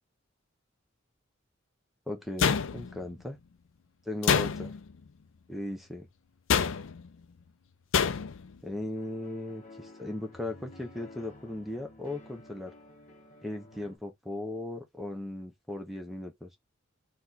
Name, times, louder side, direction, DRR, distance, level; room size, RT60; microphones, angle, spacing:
voice 1, 2.1-3.4 4.1-4.7 5.5-6.1 8.6-12.7 13.4-16.5, left 1 dB, ahead, 0.7 m, -37 dB
sound 1, 2.4-3.1 4.2-4.9 6.5-7.1 7.9-8.5, left 6 dB, 75° left, 0.4 m, -27 dB
sound 2, 8.9-14.0, left 2 dB, 40° left, 0.9 m, -52 dB
4.5 x 2.3 x 4.0 m
head